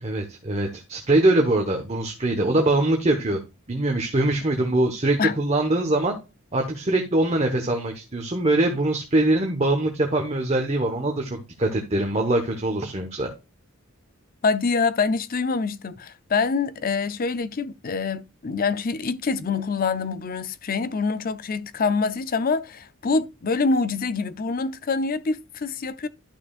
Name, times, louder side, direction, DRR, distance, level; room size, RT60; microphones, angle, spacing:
voice 1, 0.0-3.4 3.7-6.2 6.5-13.3, right 2 dB, 30° right, 1.2 m, -23 dB
voice 2, 14.4-26.1, left 4 dB, 40° left, 0.5 m, -25 dB
12.0 x 6.0 x 2.4 m
head